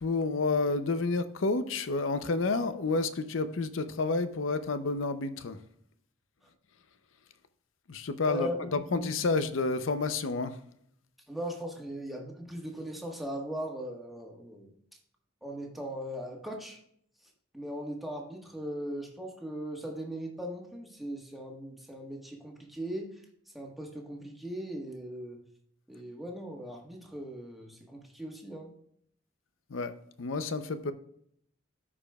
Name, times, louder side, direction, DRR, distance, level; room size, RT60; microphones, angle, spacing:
voice 1, 0.0-5.6 7.9-10.6 29.7-29.9 30.2-30.9, left 3 dB, 85° left, 11 dB, 0.6 m, -30 dB
voice 2, 8.3-9.1 11.3-14.7 15.4-16.8 17.5-23.2 23.5-25.4 25.9-28.7, equal, ahead, -1 dB, 1.4 m, -39 dB
13.5 x 5.0 x 2.3 m, 0.69 s
head